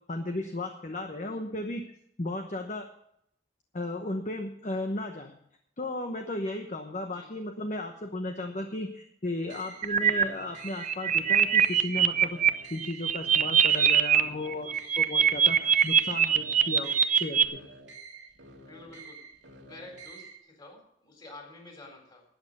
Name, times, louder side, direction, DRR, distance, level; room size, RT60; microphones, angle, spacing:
voice 1, 0.1-1.8 2.2-2.9 3.7-5.4 5.8-12.4 12.7-17.6, left 2 dB, 40° left, 4 dB, 1.0 m, -35 dB
voice 2, 0.9-1.4 7.1-7.3 14.8-15.0 18.7-19.2 19.7-22.2, left 2 dB, 25° left, 2 dB, 4.0 m, -49 dB
sound 1, 9.4-20.4, right 3 dB, 85° right, 2.2 m, -49 dB
sound 2, 9.8-10.2 10.6-12.5 12.8-14.2 14.5-17.4, right 8 dB, 45° right, 0.6 m, -22 dB
12.0 x 8.7 x 6.8 m, 0.74 s
head